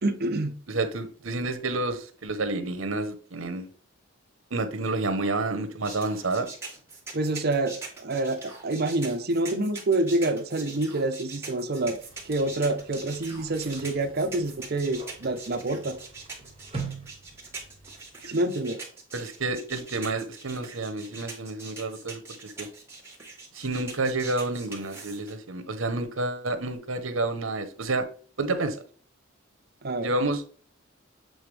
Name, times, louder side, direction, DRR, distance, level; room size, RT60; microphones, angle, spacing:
voice 1, 0.0-0.6 7.1-12.0 12.2-16.0 18.2-18.8 29.8-30.1, right 2 dB, 50° right, 0.8 m, -27 dB
voice 2, 0.7-3.7 4.5-6.5 19.1-22.7 23.5-28.0 28.4-28.8 30.0-30.4, right 2 dB, 75° right, 1.0 m, -29 dB
sound 1, 5.8-25.3, right 4 dB, 15° right, 2.0 m, -42 dB
sound 2, 11.8-18.4, right 4 dB, 30° right, 1.9 m, -43 dB
7.9 x 3.9 x 3.4 m
head